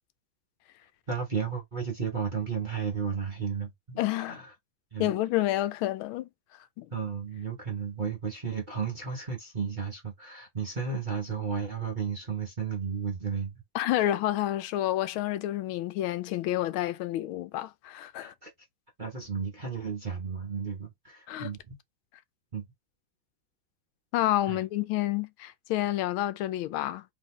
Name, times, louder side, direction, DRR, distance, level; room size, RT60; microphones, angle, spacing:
voice 1, 1.1-4.0 4.3-4.5 4.9-5.1 6.9-13.6 18.2-18.5 19.0-21.8 22.5-22.7 24.5-24.6, right 6 dB, 35° right, 0.8 m, -33 dB
voice 2, 4.0-4.4 5.0-6.3 6.8-6.9 13.7-18.3 21.3-21.5 24.1-27.0, left 14 dB, 85° left, 1.4 m, -29 dB
4.1 x 3.5 x 3.1 m
omnidirectional pair, 2.2 m